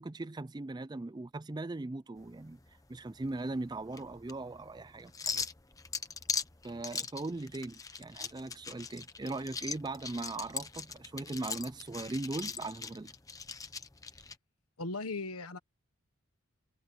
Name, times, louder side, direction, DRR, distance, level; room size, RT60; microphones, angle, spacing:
voice 1, 0.0-2.6 2.9-5.4 6.6-13.1, right 2 dB, 20° right, 0.4 m, -39 dB
sound 1, 2.2-14.4, left 5 dB, 15° left, 0.9 m, -41 dB
voice 2, 14.8-15.6, left 3 dB, 85° left, 1.4 m, -37 dB
head